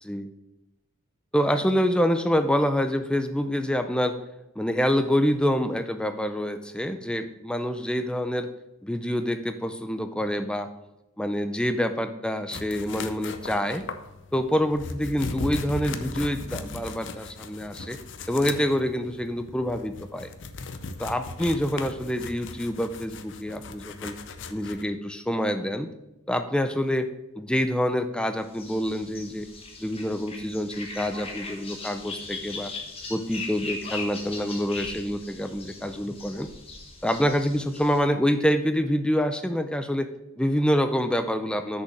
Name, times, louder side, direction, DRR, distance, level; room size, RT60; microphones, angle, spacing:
voice 1, 1.3-4.2 4.6-8.5 8.8-10.7 11.2-13.8 14.3-18.0 18.3-20.3 21.0-24.1 24.5-25.9 26.3-27.1 27.4-29.5 29.8-32.7 33.1-36.5 37.0-40.1 40.4-41.8, equal, 5° left, 9 dB, 0.4 m, -26 dB
sound 1, 12.5-24.8, left 3 dB, 55° left, 0.6 m, -38 dB
sound 2, 28.5-38.0, left 3 dB, 25° left, 1.2 m, -39 dB
6.6 x 5.4 x 6.5 m, 0.95 s
head